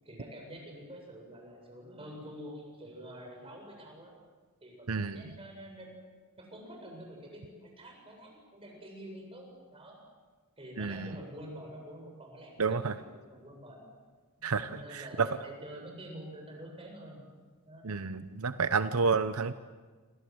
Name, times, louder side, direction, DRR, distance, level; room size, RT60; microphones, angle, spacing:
voice 1, 0.0-4.1 4.6-5.9 6.4-10.0 10.6-13.9 14.6-17.2 17.6-17.9, equal, 25° right, 1 dB, 7.7 m, -47 dB
voice 2, 4.9-5.2 10.8-11.1 12.6-12.9 14.4-14.8 17.8-19.5, right 5 dB, 80° right, 12 dB, 0.9 m, -30 dB
27.5 x 26.0 x 8.0 m, 1.4 s
head